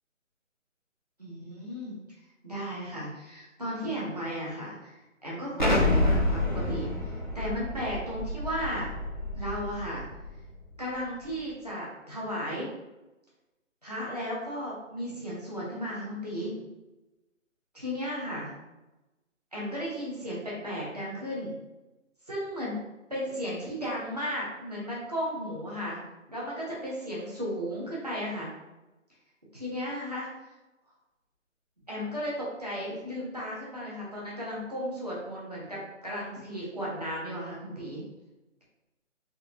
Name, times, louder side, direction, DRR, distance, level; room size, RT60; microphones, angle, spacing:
voice 1, 1.2-2.0 2.4-8.9 9.3-10.0 10.8-12.7 13.8-16.5 17.7-18.5 19.5-21.5 22.3-22.8 23.1-26.0 26.3-28.5 29.5-30.3 31.9-38.0, equal, 30° right, -6 dB, 0.7 m, -35 dB
Explosion, 5.6-10.3, left 1 dB, 40° left, 0.4 m, -28 dB
3.6 x 2.6 x 2.8 m, 1.0 s
hypercardioid pair, 175°, 39 cm